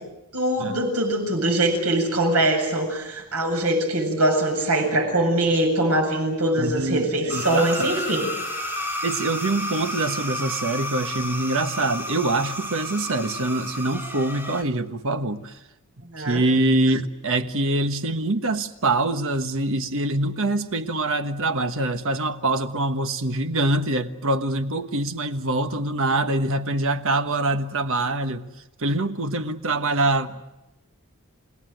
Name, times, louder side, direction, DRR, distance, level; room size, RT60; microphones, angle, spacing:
voice 1, 0.3-8.3 16.0-16.5, right 1 dB, 85° right, 8.0 m, -22 dB
voice 2, 6.6-7.9 9.0-15.5 16.2-28.5 28.8-30.4, right 2 dB, 65° right, 1.4 m, -24 dB
sound 1, 7.3-14.6, equal, 10° right, 2.9 m, -31 dB
29.5 x 18.0 x 9.3 m
head